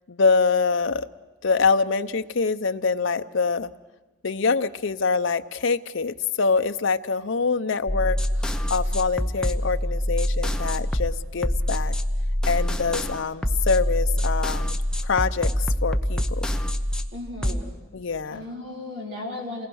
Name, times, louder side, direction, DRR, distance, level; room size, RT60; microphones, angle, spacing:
voice 1, 0.1-1.1 1.4-3.7 4.2-8.2 8.7-11.9 12.5-16.5 17.9-18.5, left 4 dB, 70° left, 9 dB, 0.7 m, -25 dB
sound 1, 7.9-17.6, equal, 5° left, 0.7 m, -25 dB
voice 2, 17.1-17.7 18.3-19.7, left 2 dB, 60° right, 0 dB, 4.2 m, -35 dB
28.0 x 18.5 x 6.3 m, 1.2 s
head